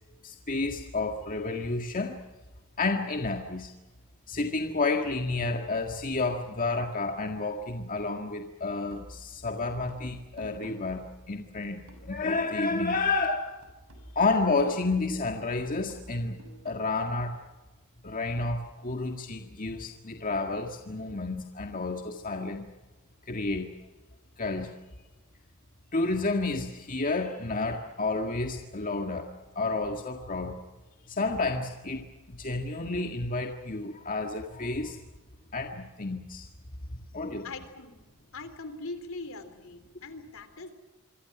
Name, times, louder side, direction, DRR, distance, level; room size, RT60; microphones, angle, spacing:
voice 1, 0.2-2.2 2.8-3.7 4.3-13.6 14.2-17.4 18.0-22.7 23.3-23.7 24.4-24.7 25.9-30.6 31.1-35.0 35.5-36.5 36.9-37.5, left 3 dB, 40° left, 3 dB, 1.8 m, -30 dB
sound 1, 8.9-13.3 13.6-16.9, right 1 dB, 70° right, 7.2 m, -50 dB
voice 2, 37.4-38.0 38.3-40.7, left 3 dB, 65° left, 10 dB, 3.5 m, -41 dB
26.5 x 25.0 x 6.1 m, 1.1 s
head